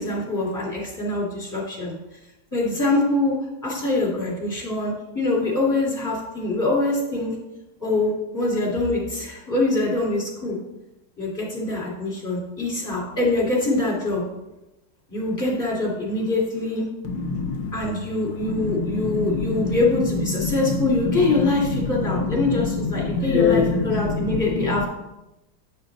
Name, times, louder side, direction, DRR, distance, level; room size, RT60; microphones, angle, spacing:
voice 1, 0.0-1.9 2.5-3.4 3.6-7.3 7.8-10.6 11.2-14.2 15.1-16.8 17.7-24.9, left 2 dB, 10° left, -6 dB, 2.8 m, -24 dB
voice 2, 17.0-17.9 18.4-24.9, left 4 dB, 80° left, 4 dB, 1.5 m, -25 dB
9.5 x 5.2 x 4.0 m, 0.96 s
omnidirectional pair, 2.0 m